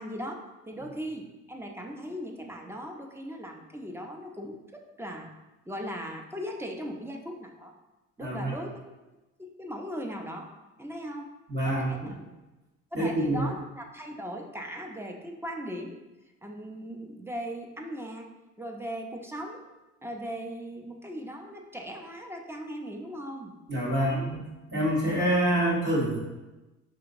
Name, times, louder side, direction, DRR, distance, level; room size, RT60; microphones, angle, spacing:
voice 1, 0.0-5.3 5.7-7.7 8.2-8.8 9.4-10.5 10.8-11.3 11.6-12.3 12.9-16.0 16.4-18.3 18.6-19.6 20.0-23.5 24.0-24.3, equal, 10° right, 2 dB, 0.5 m, -38 dB
voice 2, 8.2-8.6 11.5-12.1 12.9-13.5 23.7-24.4 24.7-26.2, right 1 dB, 35° right, -5 dB, 1.4 m, -26 dB
5.0 x 2.8 x 2.5 m, 1.1 s
cardioid pair, 90°, 31 cm